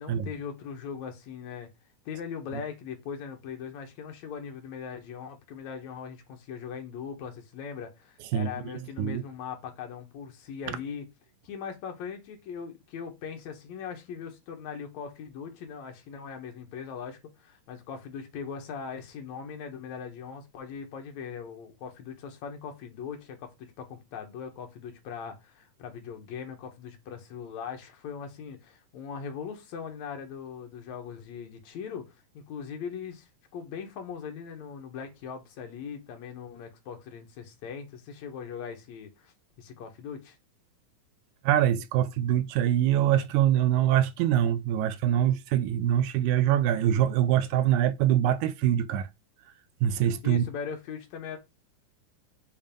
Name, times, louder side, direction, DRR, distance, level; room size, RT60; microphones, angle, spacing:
voice 1, 0.0-1.7 2.1-11.0 11.4-40.4 50.2-51.4, left 7 dB, 70° left, 2.3 m, -40 dB
voice 2, 41.4-49.1 49.8-50.4, right 11 dB, 80° right, 1.9 m, -24 dB
7.1 x 2.6 x 5.2 m
omnidirectional pair, 3.5 m